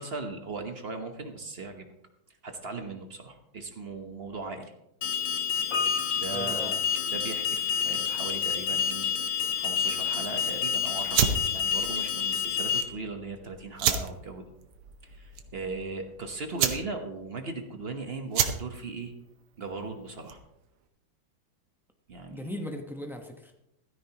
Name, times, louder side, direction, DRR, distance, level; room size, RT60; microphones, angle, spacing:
voice 1, 0.0-1.9 2.4-4.7 6.1-6.7 7.1-9.1 9.6-14.4 15.0-19.1 19.6-20.4 22.1-22.5, right 3 dB, 40° right, 5 dB, 0.9 m, -38 dB
Alarm, 5.0-12.8, left 7 dB, 80° left, 1.9 m, -29 dB
Piano, 5.7-7.8 8.0-8.1, left 4 dB, 55° left, 4.9 m, -37 dB
voice 2, 6.3-6.8 22.3-23.6, left 1 dB, 5° right, 3 dB, 0.4 m, -38 dB
sound 1, 11.1-20.6, right 8 dB, 80° right, 1.8 m, -32 dB
15.5 x 13.0 x 2.9 m, 0.84 s
omnidirectional pair, 2.3 m